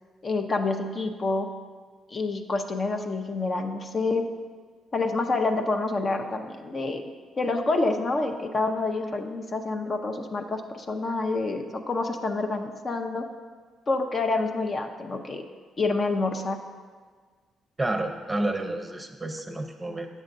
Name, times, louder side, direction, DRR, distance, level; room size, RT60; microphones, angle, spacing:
voice 1, 0.2-1.5 2.1-4.2 4.9-7.0 7.4-13.3 13.9-15.4 15.8-16.6, left 3 dB, 40° left, 5 dB, 0.6 m, -27 dB
voice 2, 17.8-20.1, right 2 dB, 15° right, 4 dB, 0.7 m, -30 dB
10.0 x 7.3 x 2.6 m, 1.5 s
cardioid pair, 90°, 0 cm